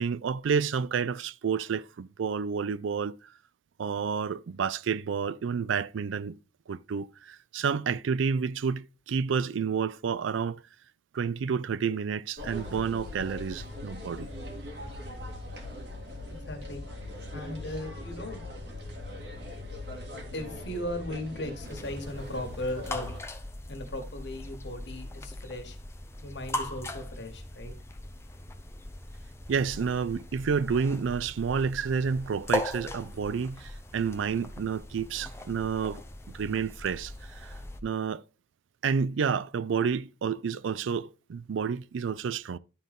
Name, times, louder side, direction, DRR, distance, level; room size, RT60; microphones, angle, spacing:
voice 1, 0.0-3.2 3.8-6.4 6.7-10.6 11.1-14.3 29.5-36.0 36.3-37.5 37.8-38.2 38.8-42.6, right 6 dB, 90° right, 0.4 m, -30 dB
sound 1, 12.4-23.2, left 1 dB, 65° right, 2.0 m, -40 dB
voice 2, 16.3-16.8 17.3-18.4 20.3-23.1 23.7-25.8 26.2-27.7, left 1 dB, 65° left, 1.7 m, -37 dB
sound 2, 21.6-37.8, left 1 dB, 15° left, 0.6 m, -39 dB
11.5 x 3.9 x 3.5 m
head